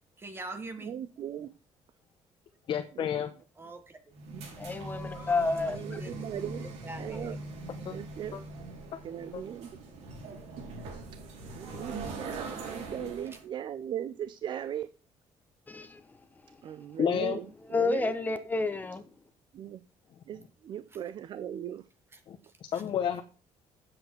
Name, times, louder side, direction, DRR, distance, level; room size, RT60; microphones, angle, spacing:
voice 1, 0.2-0.9 3.6-4.0 5.1-6.2 6.8-7.4, right 2 dB, 20° right, 1.4 m, -43 dB
voice 2, 0.8-1.6 2.9-3.1 4.3-4.5 5.7-7.4 7.8-8.4 9.0-9.8 11.1-14.9 16.6-18.1 19.5-19.8 20.3-21.9, right 10 dB, 45° right, 0.5 m, -39 dB
voice 3, 2.7-3.3 7.8-8.0 8.3-8.4 8.9-9.0 9.3-9.4 17.0-17.4 22.3-22.4 22.7-23.2, left 9 dB, 50° left, 0.9 m, -30 dB
sound 1, 4.1-13.4, right 2 dB, 80° right, 3.7 m, -41 dB
voice 4, 4.6-6.0 15.7-16.0 17.7-19.0, left 3 dB, 15° left, 1.0 m, -30 dB
9.1 x 7.8 x 4.4 m
cardioid pair, 150°, 11 cm